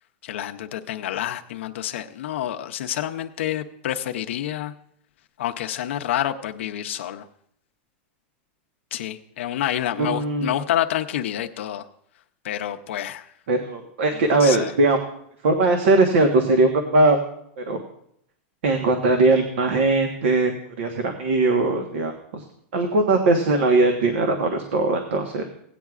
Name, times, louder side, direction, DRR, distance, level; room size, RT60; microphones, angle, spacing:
voice 1, 0.2-4.7 5.4-7.3 8.9-11.8 12.4-13.3 14.1-14.7, left 11 dB, 80° left, 5 dB, 0.6 m, -28 dB
voice 2, 10.0-10.5 13.5-15.0 15.4-17.2 17.6-17.8 18.6-20.5 20.8-22.4 22.7-25.4, right 2 dB, 75° right, 5 dB, 1.2 m, -20 dB
17.5 x 9.2 x 2.4 m, 0.70 s
supercardioid pair, 175°, 6 cm